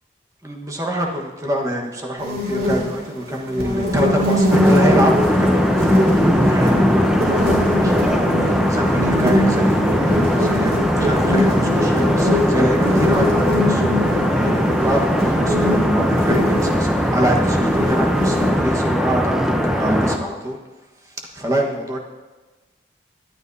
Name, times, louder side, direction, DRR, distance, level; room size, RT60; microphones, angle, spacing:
voice 1, 0.4-20.6 21.0-22.0, right 1 dB, 20° right, 0 dB, 1.3 m, -25 dB
sound 1, 2.2-18.5, left 1 dB, 60° right, 2.9 m, -22 dB
sound 2, 4.5-20.2, equal, 5° right, 0.8 m, -19 dB
23.5 x 10.0 x 2.7 m, 1.2 s
head